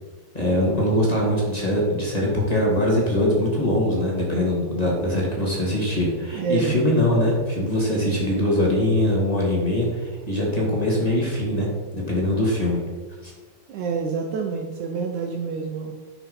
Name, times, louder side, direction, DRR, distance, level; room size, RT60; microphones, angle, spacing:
voice 1, 0.3-11.7 11.9-12.8 13.2-13.3, left 1 dB, 15° left, -4 dB, 1.8 m, -22 dB
voice 2, 6.3-6.8 13.7-15.9, right 5 dB, 85° right, 2 dB, 1.7 m, -27 dB
12.0 x 6.0 x 5.5 m, 1.4 s
omnidirectional pair, 4.7 m